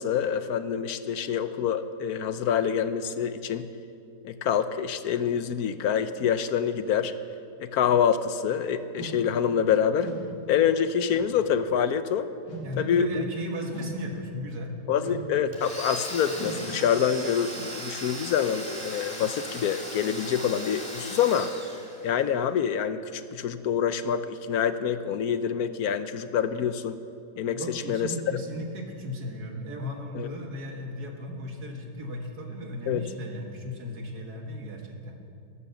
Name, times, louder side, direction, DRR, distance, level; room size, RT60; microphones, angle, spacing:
voice 1, 0.0-3.7 4.2-7.1 7.6-10.1 10.5-12.3 12.8-13.2 14.9-21.5 22.0-27.0 27.4-28.1 30.1-30.3 32.9-33.0, left 8 dB, 70° left, 11 dB, 1.1 m, -26 dB
sound 1, 8.9-9.2 10.0-10.3 11.1-11.4 12.4-12.8 13.7-14.0 15.0-15.4 16.3-16.7, equal, 90° left, 2.7 m, -39 dB
voice 2, 12.6-14.7 27.5-35.2, left 1 dB, 75° right, 2 dB, 2.3 m, -36 dB
Domestic sounds home sounds, 15.5-22.3, equal, 5° left, 2.0 m, -38 dB
14.0 x 12.5 x 7.0 m, 2.6 s
omnidirectional pair, 1.7 m